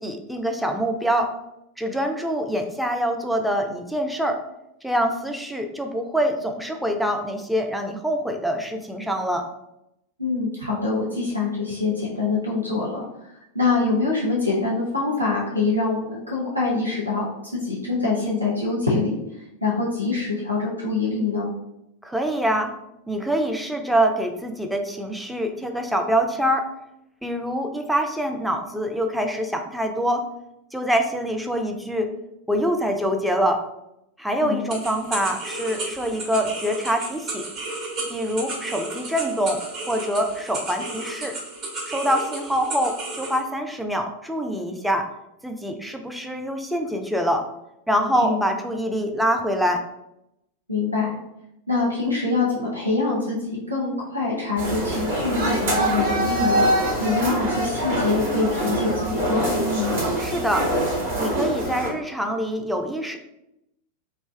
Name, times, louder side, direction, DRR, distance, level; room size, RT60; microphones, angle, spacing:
voice 1, 0.0-1.3 1.8-4.4 4.8-9.5 22.0-22.7 23.1-26.7 27.2-30.2 30.7-32.1 32.5-33.6 34.2-37.4 38.1-39.6 39.9-41.3 41.9-45.0 45.4-47.5 47.9-49.8 60.2-60.7 61.2-63.2, equal, ahead, 3 dB, 0.4 m, -25 dB
voice 2, 10.2-17.3 17.6-19.2 19.6-21.5 34.4-34.6 48.2-48.4 50.7-51.1 51.7-59.9, left 3 dB, 90° right, -5 dB, 0.7 m, -25 dB
sound 1, 34.7-43.4, right 2 dB, 35° right, 0.9 m, -33 dB
sound 2, 54.6-61.9, right 1 dB, 60° right, 1.0 m, -24 dB
2.7 x 2.2 x 3.1 m, 0.85 s
figure-of-eight pair, 90°, 0 cm